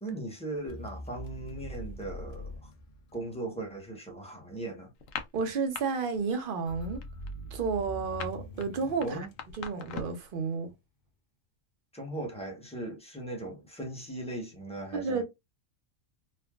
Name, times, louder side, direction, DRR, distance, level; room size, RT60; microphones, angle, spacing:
voice 1, 0.0-2.7 3.1-4.9 9.0-9.3 11.9-15.2, right 2 dB, 5° left, 0.7 m, -38 dB
sound 1, 0.7-3.7 6.7-10.1, equal, 55° left, 0.7 m, -43 dB
sound 2, 5.0-5.8 6.1-6.5 6.7-10.3, left 7 dB, 85° left, 1.0 m, -40 dB
voice 2, 5.3-7.0 7.5-9.3 9.6-10.7 14.9-15.2, right 5 dB, 55° right, 0.6 m, -31 dB
3.3 x 2.2 x 2.2 m
omnidirectional pair, 1.3 m